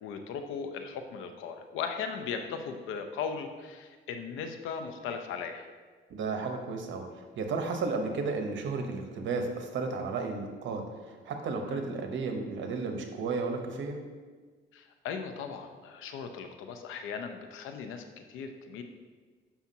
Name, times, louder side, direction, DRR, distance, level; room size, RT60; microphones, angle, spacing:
voice 1, 0.0-5.7 11.7-11.9 14.7-18.8, left 6 dB, 85° left, 6 dB, 0.6 m, -38 dB
voice 2, 6.1-14.0, right 4 dB, 70° right, 5 dB, 0.9 m, -33 dB
7.0 x 5.6 x 2.8 m, 1.5 s
cardioid pair, 90°, 20 cm